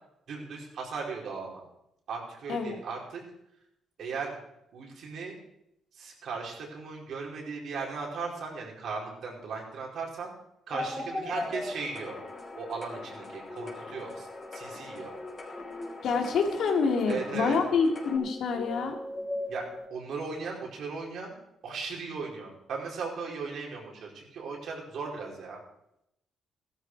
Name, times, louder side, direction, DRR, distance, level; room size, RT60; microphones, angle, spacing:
voice 1, 0.3-1.6 2.1-3.2 4.0-4.4 4.7-5.3 5.9-10.3 10.7-12.2 12.6-14.3 14.5-15.1 17.1-17.8 19.5-21.3 21.6-25.6, right 4 dB, 70° right, -1 dB, 4.8 m, -37 dB
sound 1, 10.7-19.9, left 1 dB, 10° left, 1.4 m, -40 dB
sound 2, 11.3-18.2, left 2 dB, 40° left, 4.6 m, -44 dB
voice 2, 16.0-18.9, left 5 dB, 70° left, 3 dB, 2.6 m, -27 dB
15.5 x 13.0 x 4.8 m, 0.81 s
cardioid pair, 90°, 0 cm